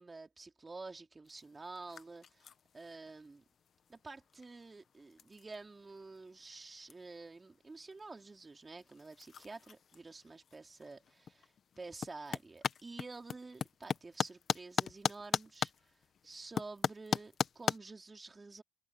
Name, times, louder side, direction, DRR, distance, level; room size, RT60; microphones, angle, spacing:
voice 1, 0.0-3.4 3.9-15.9 16.2-18.6, right 3 dB, 25° right, 3.6 m, -50 dB
sound 1, 1.3-17.8, left 7 dB, 55° left, 1.4 m, -41 dB
open air
cardioid pair, 90°, 0 cm